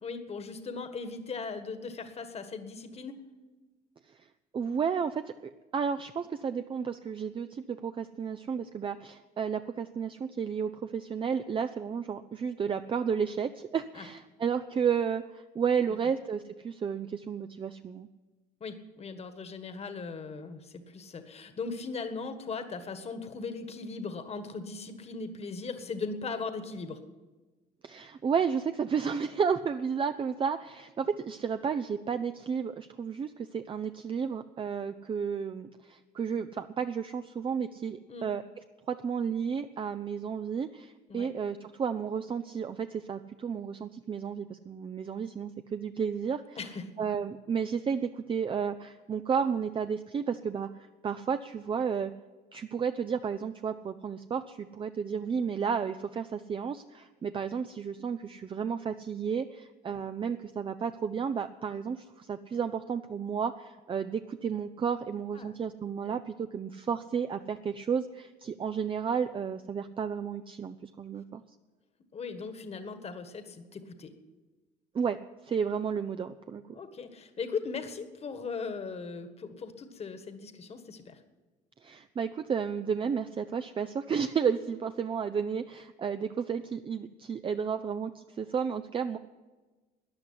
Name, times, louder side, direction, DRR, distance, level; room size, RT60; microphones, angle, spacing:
voice 1, 0.0-3.2 13.9-14.0 18.6-27.0 38.1-38.3 41.1-41.3 46.6-46.9 59.9-60.0 65.3-65.5 66.1-66.2 72.1-74.1 76.7-81.2, left 4 dB, 35° left, 9 dB, 1.6 m, -38 dB
voice 2, 4.5-18.1 27.8-38.4 38.9-46.6 47.0-50.7 51.0-52.1 52.5-71.4 74.9-75.2 75.4-76.8 81.8-89.2, right 6 dB, 30° right, 9 dB, 0.6 m, -32 dB
14.0 x 9.7 x 9.8 m, 1.3 s
cardioid pair, 110°, 17 cm